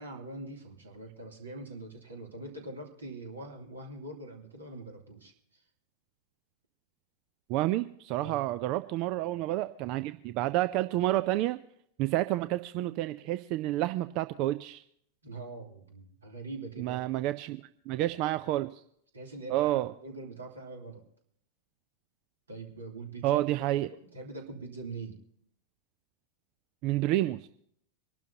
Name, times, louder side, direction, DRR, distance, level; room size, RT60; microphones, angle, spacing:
voice 1, 0.0-5.6 8.2-8.5 15.2-17.1 18.1-18.2 19.1-21.0 22.5-25.2, right 2 dB, 75° right, 1 dB, 2.8 m, -43 dB
voice 2, 7.5-11.6 12.0-14.8 16.8-17.6 17.9-18.8 19.5-19.9 23.2-23.9 26.8-27.5, right 15 dB, 40° right, 13 dB, 0.4 m, -29 dB
25.5 x 12.0 x 2.8 m, 0.65 s
figure-of-eight pair, 90°, 0 cm